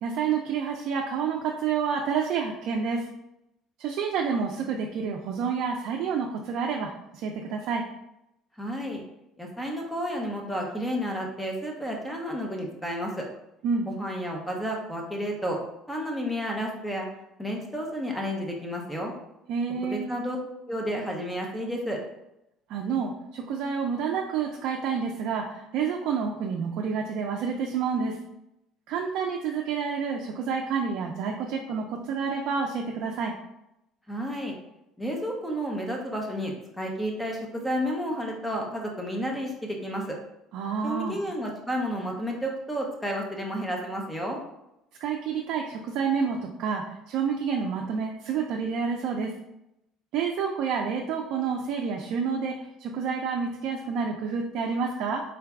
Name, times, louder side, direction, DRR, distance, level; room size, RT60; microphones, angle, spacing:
voice 1, 0.0-3.1 3.8-7.8 13.6-13.9 19.5-20.1 22.7-28.2 28.9-33.3 40.5-41.2 45.0-49.3 50.1-55.2, right 6 dB, 60° right, 0 dB, 0.4 m, -29 dB
voice 2, 8.6-9.0 9.4-13.2 13.9-15.6 15.9-17.1 17.4-19.1 19.8-20.4 20.7-22.0 34.1-34.5 35.0-40.2 40.8-44.4, equal, 5° left, 0 dB, 0.6 m, -31 dB
3.8 x 2.2 x 3.5 m, 0.85 s
cardioid pair, 155°, 0 cm